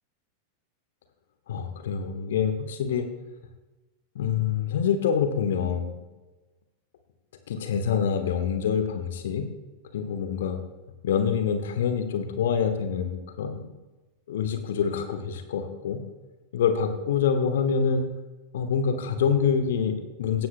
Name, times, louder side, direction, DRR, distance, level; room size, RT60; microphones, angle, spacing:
voice 1, 1.5-3.1 4.1-6.0 7.5-9.4 9.9-10.6 11.0-13.6 14.3-16.0 16.5-18.0 18.5-20.5, left 7 dB, 60° left, 7 dB, 1.2 m, -26 dB
17.5 x 16.0 x 2.2 m, 1.2 s
figure-of-eight pair, 90°, 0 cm